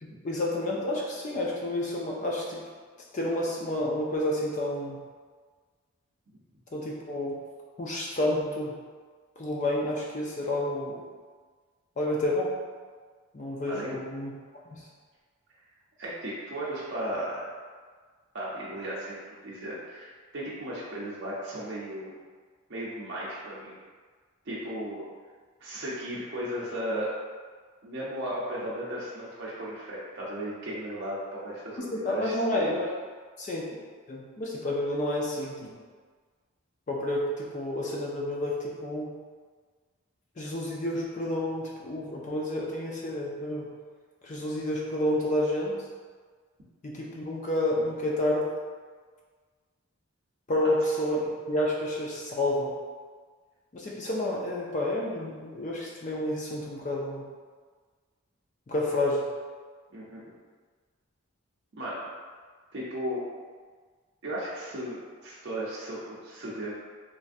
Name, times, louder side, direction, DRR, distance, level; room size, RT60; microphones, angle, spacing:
voice 1, 0.0-2.6 3.1-5.0 6.7-7.4 7.8-8.8 9.4-11.0 12.0-12.6 13.3-14.3 14.7-14.9 31.8-32.9 33.4-33.7 34.1-35.8 36.9-39.1 40.4-43.7 44.2-45.8 46.8-48.5 50.5-52.7 53.7-57.2 58.7-59.2, left 1 dB, 35° left, -3 dB, 0.4 m, -30 dB
voice 2, 16.0-17.5 18.3-22.2 22.7-23.7 24.5-25.1 25.6-27.1 27.8-32.8 50.6-50.7 59.9-60.2 61.8-62.1 62.7-63.3 64.2-66.7, right 1 dB, 50° right, -7 dB, 0.5 m, -35 dB
3.1 x 2.5 x 2.5 m, 1.5 s
head